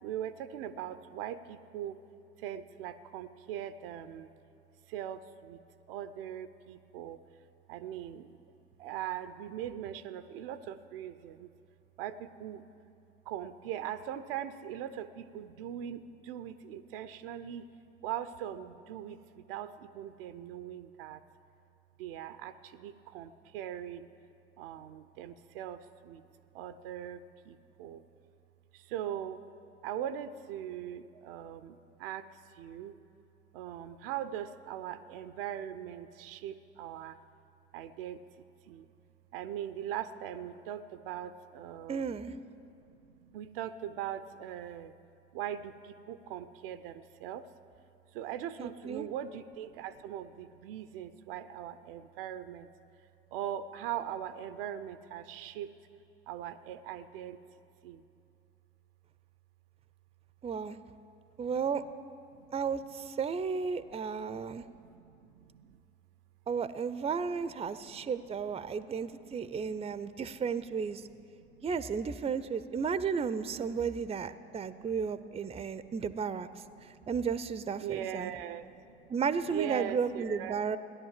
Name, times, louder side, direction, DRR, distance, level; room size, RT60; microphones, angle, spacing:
voice 1, 0.0-2.0 2.4-4.3 4.9-5.6 5.9-7.2 7.7-8.4 8.8-11.5 12.0-12.6 13.3-17.7 18.0-21.2 22.0-24.1 24.6-26.2 26.5-28.0 28.7-29.4 29.8-32.3 32.6-33.0 33.5-37.2 37.7-38.2 38.7-38.9 39.3-42.2 42.9-44.9 45.3-47.5 48.1-52.7 53.3-55.7 56.3-57.4 57.8-58.0 62.3-62.5 63.8-64.0 64.3-65.8 67.6-68.1 68.6-68.8 69.0-70.2 71.4-71.7 73.7-74.9 75.6-76.1 76.7-77.1 77.8-79.1 79.5-80.7, right 10 dB, 75° right, 12 dB, 0.6 m, -41 dB
voice 2, 41.9-42.3 48.6-49.1 60.4-60.8 61.4-61.8 62.5-64.6 66.5-71.0 71.6-76.5 76.8-78.3 79.1-80.8, right 6 dB, 20° right, 15 dB, 0.6 m, -33 dB
15.5 x 10.5 x 7.4 m, 2.6 s
hypercardioid pair, 60°, 29 cm